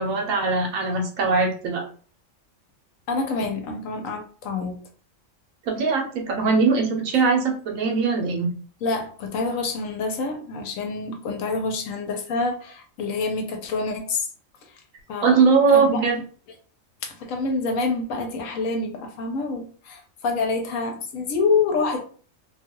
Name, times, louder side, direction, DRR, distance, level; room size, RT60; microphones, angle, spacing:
voice 1, 0.0-1.8 5.7-8.5 15.2-16.2, right 4 dB, 85° right, 1.2 m, -21 dB
voice 2, 3.1-4.7 8.8-14.3 15.1-15.4 15.7-16.0 17.0-22.0, left 3 dB, 80° left, 1.1 m, -27 dB
2.7 x 2.3 x 2.9 m
omnidirectional pair, 1.4 m